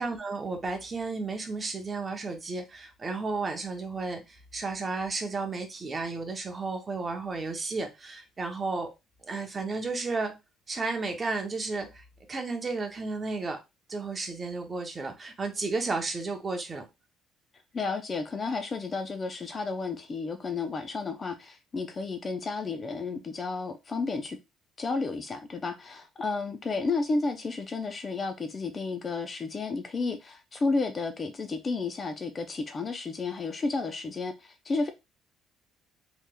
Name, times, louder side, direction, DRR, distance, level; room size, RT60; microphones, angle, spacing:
voice 1, 0.0-8.9 9.2-10.3 10.7-13.6 13.9-16.9, right 3 dB, 25° right, 0.7 m, -33 dB
voice 2, 17.7-24.4 24.8-34.9, left 3 dB, 25° left, 0.3 m, -32 dB
3.4 x 3.0 x 2.2 m
cardioid pair, 145°, 0 cm